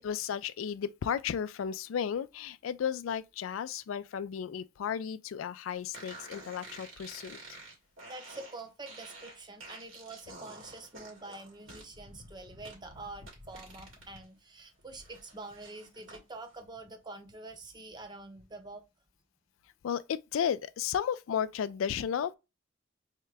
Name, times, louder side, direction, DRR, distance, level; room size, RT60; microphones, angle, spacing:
voice 1, 0.0-7.6 19.8-22.4, left 8 dB, 85° left, 0.3 m, -34 dB
sound 1, 5.9-14.2 14.6-16.2, right 2 dB, 80° right, 2.2 m, -50 dB
voice 2, 8.0-18.8, right 2 dB, 20° right, 0.7 m, -46 dB
3.6 x 3.3 x 3.3 m
head